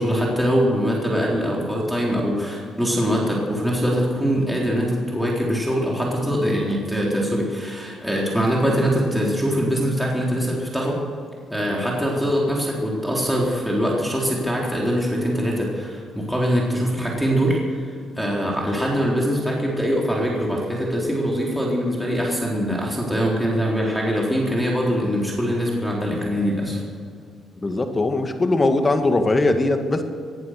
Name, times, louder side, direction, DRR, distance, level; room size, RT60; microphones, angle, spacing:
voice 1, 0.0-11.0 11.5-26.8, equal, ahead, -3 dB, 4.0 m, -23 dB
voice 2, 27.6-30.0, left 2 dB, 25° left, 6 dB, 1.9 m, -20 dB
19.5 x 11.0 x 6.6 m, 2.2 s
cardioid pair, 90°, 0 cm